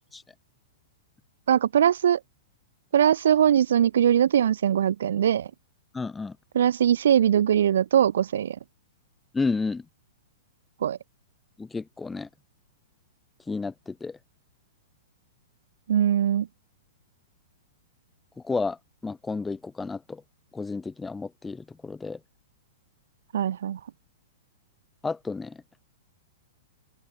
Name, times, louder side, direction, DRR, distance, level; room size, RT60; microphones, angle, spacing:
voice 1, 1.5-2.2 2.9-5.5 6.5-8.6 10.8-11.0 15.9-16.5 23.3-23.8, right 9 dB, 75° right, 2.3 m, -21 dB
voice 2, 5.9-6.4 9.3-9.8 11.6-12.3 13.5-14.2 18.4-18.8 19.0-20.2 20.5-22.2 25.0-25.6, left 4 dB, 10° left, 4.1 m, -31 dB
open air
hypercardioid pair, 130°, 0 cm